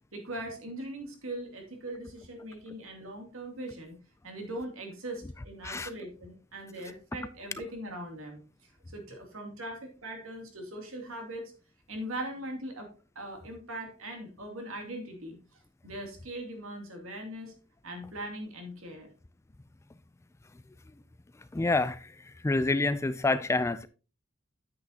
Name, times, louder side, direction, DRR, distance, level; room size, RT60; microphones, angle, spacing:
voice 1, 0.1-4.0 4.2-11.5 11.9-12.9 13.1-17.5 17.8-19.1, right 1 dB, 70° right, 2.6 m, -40 dB
voice 2, 21.5-22.1 22.4-23.9, left 2 dB, 15° left, 0.3 m, -27 dB
9.4 x 8.4 x 2.8 m
head